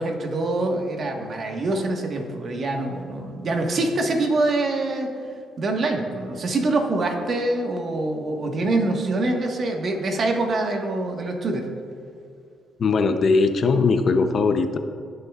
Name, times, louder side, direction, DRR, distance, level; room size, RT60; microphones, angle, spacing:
voice 1, 0.0-5.1 5.6-11.7, right 2 dB, 50° right, 2 dB, 1.4 m, -25 dB
voice 2, 12.8-14.8, left 4 dB, 50° left, 8 dB, 0.6 m, -20 dB
17.5 x 6.9 x 2.4 m, 2.3 s
cardioid pair, 90°, 0 cm